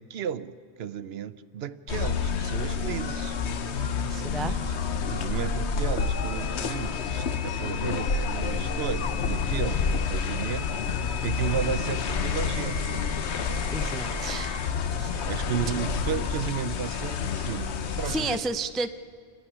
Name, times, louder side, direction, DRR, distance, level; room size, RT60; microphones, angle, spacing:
voice 1, 0.0-3.4 4.4-4.7 5.1-13.2 15.2-18.2, right 8 dB, 70° right, 14 dB, 0.9 m, -34 dB
sound 1, 1.9-18.4, left 5 dB, 90° left, 1.2 m, -29 dB
voice 2, 4.1-4.6 13.7-15.3 18.0-18.9, right 3 dB, ahead, 10 dB, 0.3 m, -32 dB
sound 2, 6.0-14.7, left 7 dB, 60° left, 1.0 m, -40 dB
27.5 x 11.5 x 9.9 m, 2.1 s
omnidirectional pair, 1.1 m